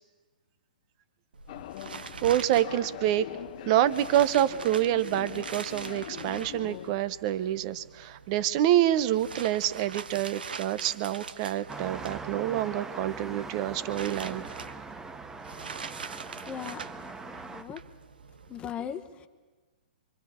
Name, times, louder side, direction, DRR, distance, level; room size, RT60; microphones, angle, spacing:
sound 1, 1.3-18.6, right 5 dB, 85° right, 0.9 m, -44 dB
sound 2, 1.5-7.0, left 14 dB, 50° left, 0.6 m, -43 dB
voice 1, 2.2-3.3 3.7-14.4, right 12 dB, 40° right, 15 dB, 0.8 m, -27 dB
sound 3, 11.7-17.6, right 4 dB, 10° right, 0.8 m, -41 dB
voice 2, 16.4-17.8 18.5-19.3, left 8 dB, 20° left, 7 dB, 1.2 m, -39 dB
25.5 x 24.0 x 4.4 m, 1.3 s
hypercardioid pair, 130°, 5 cm